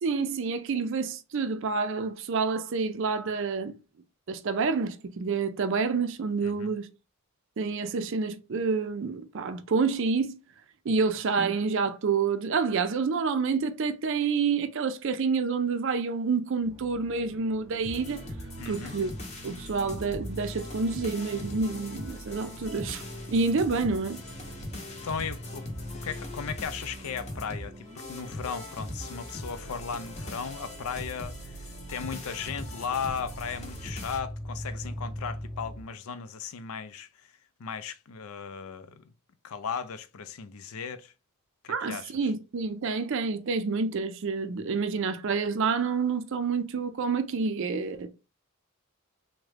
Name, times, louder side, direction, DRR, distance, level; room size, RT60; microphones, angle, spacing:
voice 1, 0.0-3.7 4.3-6.9 7.6-10.4 10.9-18.2 18.7-19.1 19.4-23.0 23.3-24.2 41.7-48.1, right 4 dB, 55° right, 0.4 m, -28 dB
voice 2, 6.4-6.7 18.6-19.0 25.0-25.7 26.0-37.1 37.6-39.1 39.4-41.1 41.6-42.3, left 6 dB, 75° left, 0.4 m, -36 dB
sound 1, 16.6-35.8, left 1 dB, 15° right, 0.6 m, -44 dB
sound 2, 17.8-34.2, left 1 dB, 30° left, 0.7 m, -40 dB
3.5 x 2.1 x 3.3 m
head